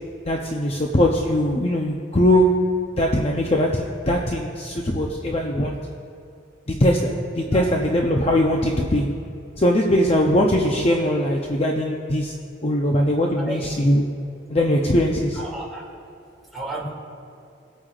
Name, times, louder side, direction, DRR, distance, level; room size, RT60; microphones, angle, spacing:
voice 1, 0.3-2.7 3.0-5.8 6.7-9.1 9.6-12.3 12.6-14.0 14.5-15.4, equal, 30° left, 0 dB, 0.6 m, -21 dB
voice 2, 13.4-13.9 15.3-15.9 16.5-16.9, right 1 dB, ahead, -7 dB, 2.4 m, -33 dB
22.5 x 8.7 x 2.4 m, 2.5 s
head